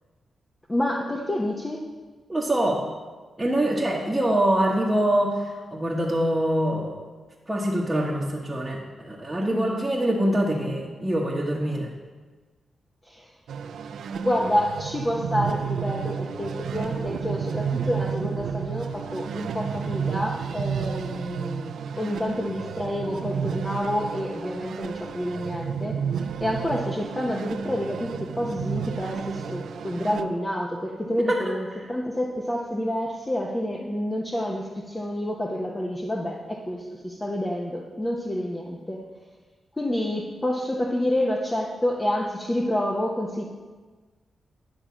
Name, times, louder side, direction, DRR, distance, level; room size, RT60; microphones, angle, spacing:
voice 1, 0.7-1.9 9.5-9.8 13.0-13.3 14.2-26.0 26.4-39.0 39.8-43.4, left 1 dB, 20° left, -2 dB, 0.9 m, -28 dB
voice 2, 2.3-2.8 3.4-7.0 7.5-11.9 31.3-31.4, right 1 dB, 15° right, -5 dB, 1.2 m, -24 dB
sound 1, 13.5-30.2, right 7 dB, 80° right, 0.3 m, -31 dB
10.0 x 3.6 x 7.1 m, 1.4 s
cardioid pair, 75°, 0 cm